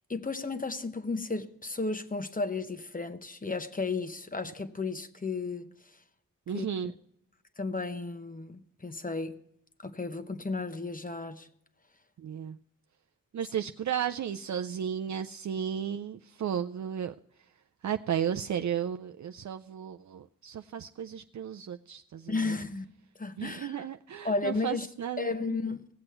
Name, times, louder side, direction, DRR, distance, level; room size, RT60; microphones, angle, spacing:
voice 1, 0.1-5.7 6.5-6.7 7.6-9.4 9.8-11.5 22.3-22.9 23.2-23.9 24.2-24.9 25.2-25.9, left 3 dB, 25° left, 0.8 m, -33 dB
voice 2, 6.5-6.9 12.2-12.6 13.3-17.1 17.8-22.5 23.4-25.7, right 9 dB, 65° right, 0.4 m, -34 dB
18.0 x 7.9 x 4.4 m
wide cardioid pair, 100°, 31 cm